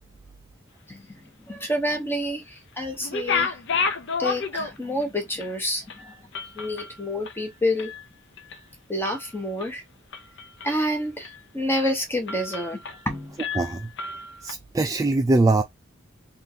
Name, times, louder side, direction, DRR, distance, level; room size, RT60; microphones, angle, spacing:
voice 1, 0.9-1.2 1.5-3.6 4.2-6.1 6.5-7.9 8.9-9.8 10.6-12.8 13.1-13.4, left 1 dB, 10° left, 1.0 m, -28 dB
sound 1, 3.0-5.0 5.4-5.5 5.9-8.0 8.4-8.7 9.0-9.7 10.1-10.8 11.2-11.4 11.8-11.9 12.3-13.1 13.4-14.5, left 5 dB, 60° left, 0.6 m, -31 dB
voice 2, 13.6-13.9 14.4-15.6, right 2 dB, 15° right, 0.3 m, -22 dB
3.6 x 2.5 x 2.7 m
head